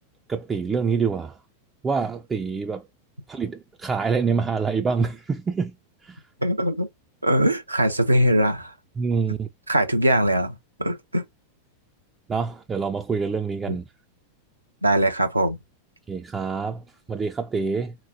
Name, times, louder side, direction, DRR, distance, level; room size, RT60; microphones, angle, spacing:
voice 1, 0.3-1.4 1.8-2.8 3.3-5.7 6.0-6.2 9.0-9.5 12.3-13.8 16.1-18.0, right 5 dB, 15° right, 0.4 m, -26 dB
voice 2, 6.4-6.9 7.2-8.7 9.7-11.2 13.7-13.8 14.8-15.6, right 1 dB, 85° right, 0.8 m, -21 dB
3.7 x 3.0 x 2.7 m
figure-of-eight pair, 90°, 0 cm